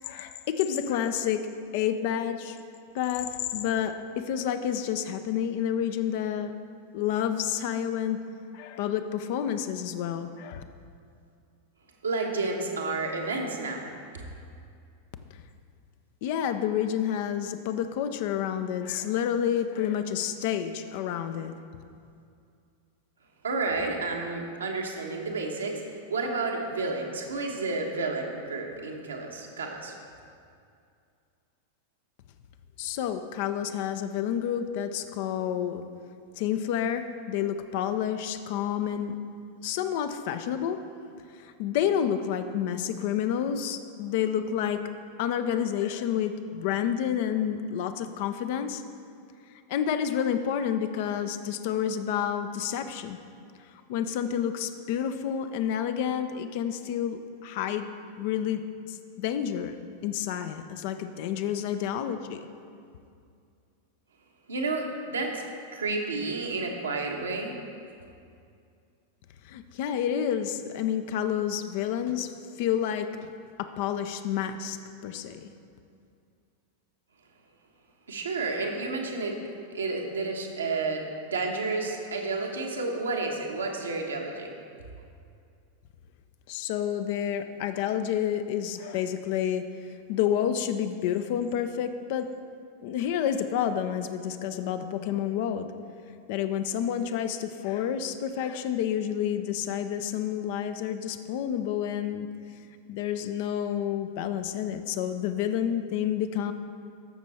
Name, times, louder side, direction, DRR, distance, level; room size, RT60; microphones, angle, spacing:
voice 1, 0.0-1.4 1.7-2.6 2.9-6.5 6.9-8.2 8.5-10.6 16.2-21.5 32.8-35.8 36.4-39.1 39.6-40.8 41.3-44.8 45.2-48.8 49.7-53.2 53.9-57.9 58.2-58.6 58.9-59.8 60.0-62.4 69.4-73.3 73.6-74.8 75.0-75.5 86.5-89.6 90.1-92.3 92.8-95.7 96.3-102.3 102.9-106.5, left 9 dB, 50° left, 9 dB, 0.6 m, -29 dB
voice 2, 12.0-13.9 23.4-25.8 26.1-29.9 64.5-65.4 65.7-67.5 78.1-79.4 79.7-84.5, right 3 dB, 70° right, 1 dB, 1.3 m, -31 dB
14.0 x 6.2 x 4.2 m, 2.4 s
figure-of-eight pair, 90°, 0 cm